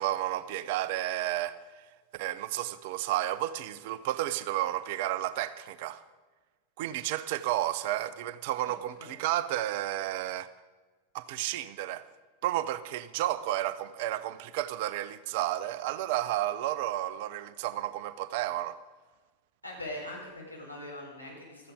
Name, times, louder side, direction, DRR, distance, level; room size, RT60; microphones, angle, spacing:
voice 1, 0.0-1.6 2.1-6.0 6.8-10.5 11.1-12.0 12.4-18.8, right 14 dB, 50° right, 15 dB, 0.7 m, -32 dB
voice 2, 19.6-21.7, left 1 dB, 90° left, -3 dB, 4.4 m, -41 dB
15.5 x 13.0 x 5.0 m, 1.3 s
figure-of-eight pair, 90°, 0 cm